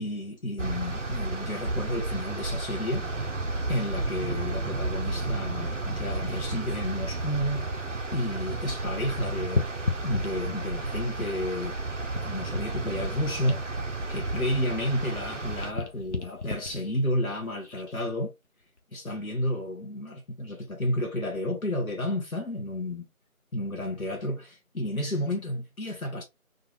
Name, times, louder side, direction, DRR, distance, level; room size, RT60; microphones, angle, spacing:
voice 1, 0.0-3.0 3.7-7.7 8.1-9.7 10.0-11.8 12.2-13.6 14.1-18.3 18.9-23.1 23.5-26.2, left 1 dB, 80° left, 1.1 m, -31 dB
sound 1, 0.6-15.7, right 2 dB, 60° right, 0.8 m, -32 dB
sound 2, 5.7-8.4 8.7-10.9 11.4-15.0 15.2-18.0 18.6-18.8, left 3 dB, 55° left, 0.8 m, -36 dB
3.9 x 2.5 x 2.6 m
figure-of-eight pair, 170°, 42 cm